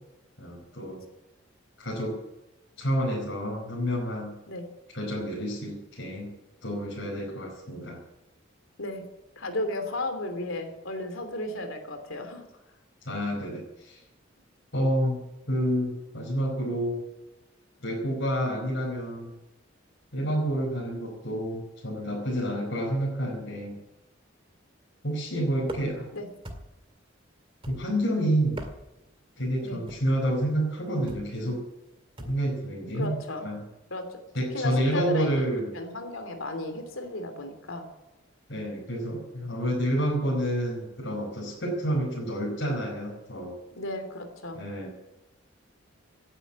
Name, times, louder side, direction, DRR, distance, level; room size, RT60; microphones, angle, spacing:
voice 1, 0.4-1.0 1.8-2.2 2.8-4.4 4.9-6.3 6.6-8.0 13.0-14.0 14.7-15.2 15.5-17.0 17.8-19.3 20.1-23.8 25.0-26.1 27.7-28.6 29.4-31.6 32.2-33.6 34.3-35.7 38.5-43.5 44.5-44.9, equal, 60° left, -3 dB, 4.7 m, -29 dB
voice 2, 9.4-12.4 26.1-26.3 29.6-29.8 33.0-33.5 33.9-34.2 34.5-35.5 35.7-37.9 43.7-44.6, left 1 dB, 85° left, 7 dB, 3.0 m, -34 dB
sound 1, 25.6-26.1 26.4-26.9 27.6-28.1 28.4-29.1 29.9-30.2 31.1-31.4 32.2-32.5, right 1 dB, 25° right, 1.9 m, -41 dB
17.0 x 9.9 x 8.3 m, 0.99 s
head